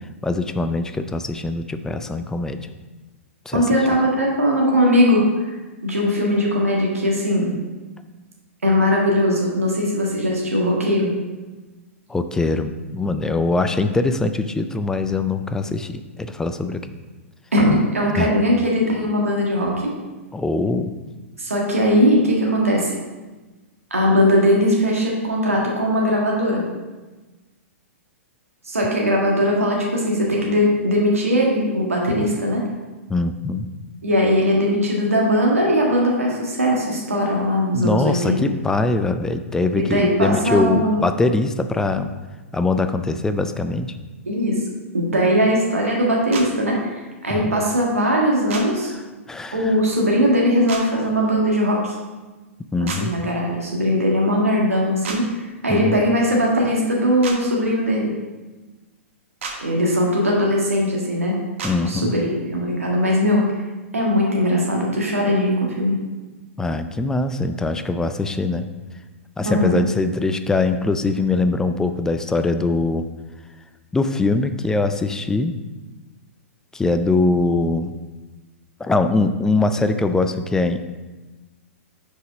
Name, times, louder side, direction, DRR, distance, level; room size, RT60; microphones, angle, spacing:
voice 1, 0.2-2.6 3.5-3.6 12.1-16.9 18.2-18.3 19.0-19.1 20.3-20.9 33.1-33.7 37.7-42.1 42.5-43.9 47.3-47.5 49.3-49.6 52.7-53.1 55.7-56.0 61.6-62.1 66.6-68.7 69.4-73.0 73.9-75.5 76.7-78.0 78.8-80.8, left 3 dB, 5° left, 9 dB, 0.4 m, -22 dB
voice 2, 3.5-5.6 5.8-7.5 8.6-11.1 17.5-19.9 21.4-22.9 23.9-26.6 28.6-32.6 34.0-38.4 39.8-41.0 44.2-44.6 44.9-48.9 49.5-52.0 52.8-58.1 59.6-61.4 61.8-63.4 63.9-66.0 69.4-69.8, equal, 85° right, -2 dB, 1.6 m, -20 dB
sound 1, 46.3-46.5 48.5-48.6 50.7-50.8 52.9-53.0 55.0-55.2 57.2-57.4 59.4-59.6 61.6-61.7, right 4 dB, 65° right, 1.3 m, -29 dB
6.4 x 4.9 x 4.9 m, 1.2 s
figure-of-eight pair, 110°, 7 cm